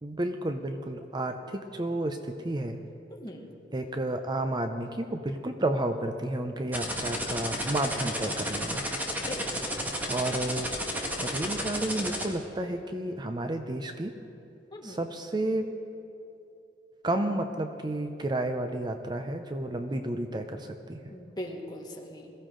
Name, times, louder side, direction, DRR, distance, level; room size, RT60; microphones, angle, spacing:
voice 1, 0.0-2.8 3.7-8.8 10.0-10.7 11.2-14.1 14.8-15.7 17.0-21.1, right 1 dB, 25° right, 6 dB, 0.6 m, -31 dB
voice 2, 3.1-3.5 9.2-9.7 14.7-15.0 21.1-22.3, left 1 dB, 25° left, 0 dB, 1.7 m, -40 dB
sound 1, 6.7-12.2, equal, 10° right, 1.7 m, -32 dB
21.5 x 15.0 x 3.8 m, 2.8 s
head